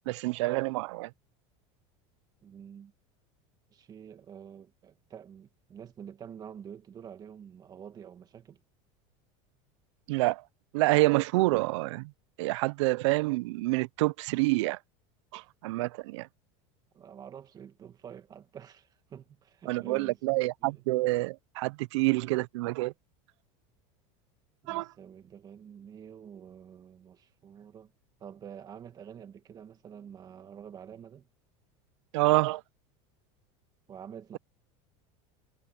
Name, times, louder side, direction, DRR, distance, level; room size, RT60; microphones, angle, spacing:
voice 1, 0.1-1.1 10.1-10.4 10.7-12.1 12.4-14.8 15.3-16.3 19.7-22.9 24.7-24.9 32.1-32.6, right 21 dB, 80° right, 0.5 m, -27 dB
voice 2, 2.4-2.9 3.7-8.6 16.9-20.4 20.7-20.8 24.6-27.9 28.2-31.3 33.9-34.4, right 8 dB, 25° right, 1.8 m, -47 dB
supercardioid pair, 155°, 15 cm